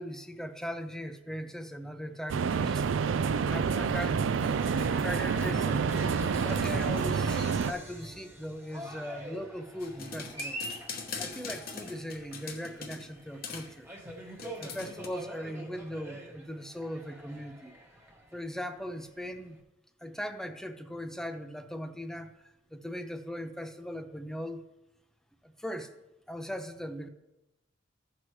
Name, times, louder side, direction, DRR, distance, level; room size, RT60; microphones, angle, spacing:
voice 1, 0.0-2.8 3.5-4.4 4.8-5.8 6.4-10.7 11.2-13.9 14.6-17.7 18.3-19.6 20.0-22.3 22.7-24.6 25.4-25.9 26.3-27.1, equal, 5° left, 8 dB, 0.5 m, -39 dB
sound 1, 2.3-7.7, right 6 dB, 90° right, 0.4 m, -28 dB
Cheering, 4.4-19.6, equal, 10° right, 1.1 m, -44 dB
sound 2, 9.8-13.1 13.4-13.7 14.4-15.1, left 5 dB, 50° left, 1.0 m, -41 dB
15.0 x 6.1 x 3.2 m, 0.96 s
head